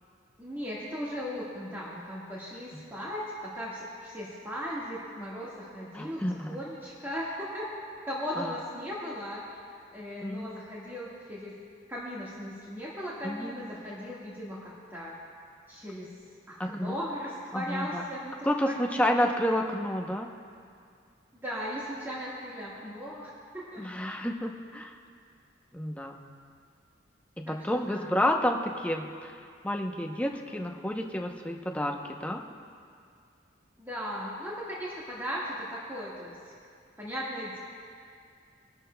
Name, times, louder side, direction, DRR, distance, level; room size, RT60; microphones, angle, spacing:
voice 1, 0.4-7.7 8.0-9.6 9.9-11.5 11.9-15.2 15.7-16.1 16.5-19.3 21.4-23.9 27.5-28.1 33.8-36.6 37.0-37.6, equal, 10° right, -8 dB, 1.5 m, -37 dB
voice 2, 5.9-6.5 8.4-8.5 10.2-10.5 13.2-13.5 16.6-17.0 17.5-18.0 18.4-20.3 23.8-24.9 25.7-26.3 27.4-29.3 29.6-32.4, left 1 dB, 5° left, 2 dB, 0.7 m, -30 dB
22.0 x 12.0 x 2.2 m, 2.3 s
head